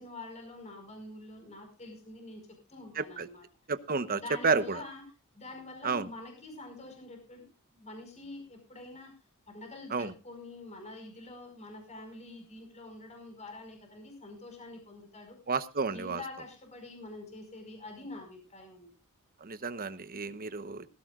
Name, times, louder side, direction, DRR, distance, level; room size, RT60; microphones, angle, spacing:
voice 1, 0.0-3.4 4.1-5.0 5.3-7.5 7.7-9.1 9.5-15.4 15.9-19.0, left 2 dB, 30° left, 4 dB, 5.2 m, -46 dB
voice 2, 3.0-3.3 3.7-4.8 5.8-6.1 9.9-10.1 15.5-16.2 19.4-20.9, right 4 dB, 40° right, 13 dB, 1.1 m, -31 dB
18.0 x 16.0 x 2.5 m, 0.30 s
head